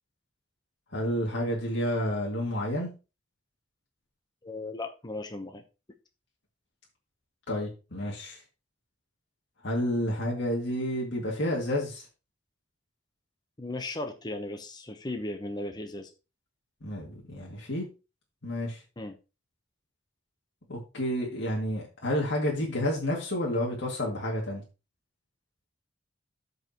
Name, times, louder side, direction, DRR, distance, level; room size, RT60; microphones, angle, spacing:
voice 1, 0.9-2.9 7.5-8.4 9.6-12.1 16.8-17.9 18.4-18.8 20.7-24.6, left 1 dB, 65° left, -2 dB, 2.2 m, -30 dB
voice 2, 4.4-5.6 13.6-16.1 19.0-19.2, left 2 dB, 20° left, 6 dB, 0.8 m, -36 dB
12.5 x 5.2 x 2.9 m, 0.30 s
head